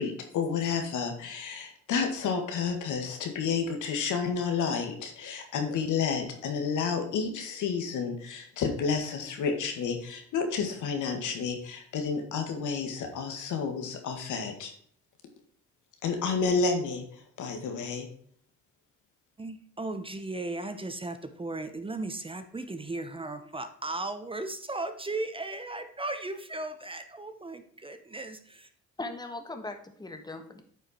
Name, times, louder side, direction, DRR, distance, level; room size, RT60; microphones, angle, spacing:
voice 1, 0.0-14.7 16.0-17.0 17.4-18.1, left 5 dB, 80° left, 5 dB, 1.9 m, -30 dB
voice 2, 19.4-28.7, right 2 dB, 20° right, 9 dB, 0.9 m, -36 dB
voice 3, 29.0-30.6, left 2 dB, 15° left, 6 dB, 1.3 m, -39 dB
9.1 x 5.2 x 4.4 m, 0.62 s
cardioid pair, 90°, 30 cm